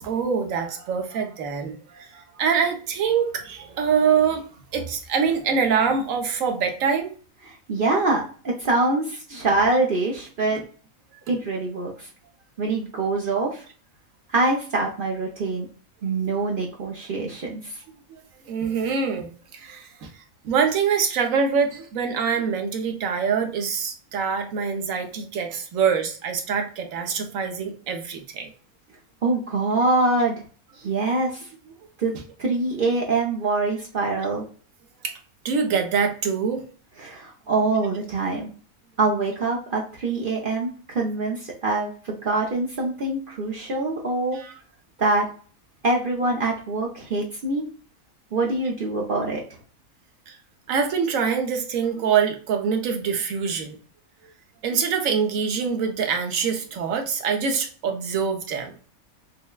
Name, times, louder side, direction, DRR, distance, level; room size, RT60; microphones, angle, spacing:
voice 1, 0.0-4.4 4.7-7.1 18.1-18.2 18.5-20.1 20.4-28.5 35.0-35.1 35.4-36.6 44.3-44.6 50.3-50.4 50.7-53.8 54.6-58.7, right 6 dB, 70° right, 5 dB, 1.1 m, -24 dB
voice 2, 7.5-10.6 11.3-12.1 12.6-13.6 14.3-15.7 16.0-17.8 29.2-30.4 30.8-31.5 32.0-34.4 37.0-38.5 39.0-44.4 45.0-45.3 45.8-47.7 48.3-49.4, right 3 dB, 55° right, -1 dB, 0.6 m, -24 dB
5.5 x 2.1 x 2.2 m, 0.41 s
omnidirectional pair, 1.5 m